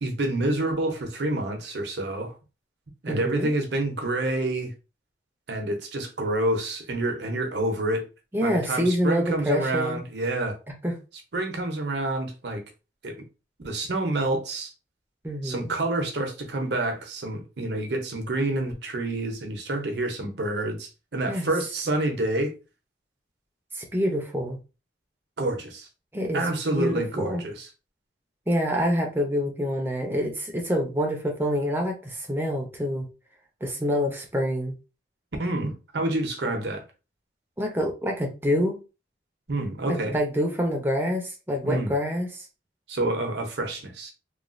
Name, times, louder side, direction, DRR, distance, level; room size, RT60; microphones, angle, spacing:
voice 1, 0.0-2.3 3.0-4.7 5.5-8.1 8.4-10.6 11.3-12.6 13.0-13.2 13.6-14.7 15.4-22.5 25.4-25.9 26.3-27.7 35.4-36.8 39.5-40.1 41.6-41.9 42.9-44.1, right 2 dB, 60° right, 0.7 m, -28 dB
voice 2, 3.1-3.5 8.3-10.1 10.8-10.9 15.2-15.7 21.3-21.5 23.7-24.6 26.1-26.4 26.7-27.4 28.5-33.1 33.6-34.7 37.6-38.8 39.9-42.5, equal, 10° right, 0.5 m, -26 dB
3.1 x 2.3 x 2.5 m
head